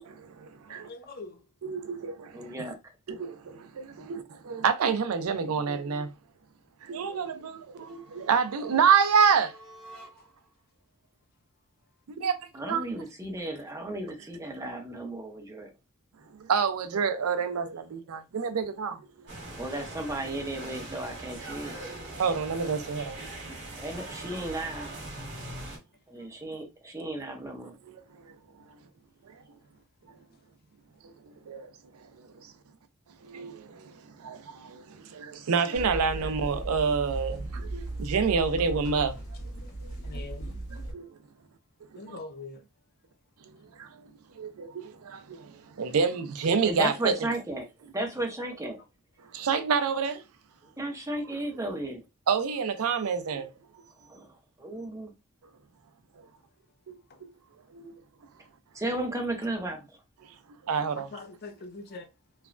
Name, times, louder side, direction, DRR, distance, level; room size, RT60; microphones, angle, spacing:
voice 1, 0.1-0.9 1.6-2.5 3.1-6.1 6.8-9.5 12.1-12.4 12.7-12.9 16.4-19.3 22.2-23.2 27.8-28.3 29.3-29.4 31.0-32.5 33.2-39.2 40.9-41.1 43.7-44.0 44.3-47.2 49.3-50.2 51.3-51.4 52.3-53.5 56.9-57.0 57.7-58.0 60.6-61.1, right 6 dB, 75° right, 0.4 m, -28 dB
voice 2, 0.7-1.5 3.9-4.2 10.2-10.3 26.2-26.3 39.7-40.6 41.9-42.7 49.2-49.3 57.1-57.3 61.0-62.1, left 3 dB, 45° left, 0.5 m, -44 dB
voice 3, 2.3-2.8 12.5-15.7 19.6-21.8 23.8-24.9 26.1-27.7 46.6-47.7 47.9-48.8 50.8-52.0 54.1-54.3 54.6-55.1 58.7-59.9, right 1 dB, 15° right, 0.7 m, -34 dB
sound 1, 7.7-10.5, right 1 dB, 5° left, 1.0 m, -52 dB
sound 2, 19.3-25.8, right 2 dB, 55° right, 1.2 m, -41 dB
sound 3, 35.7-40.9, right 2 dB, 70° left, 1.5 m, -37 dB
3.1 x 2.2 x 2.4 m
head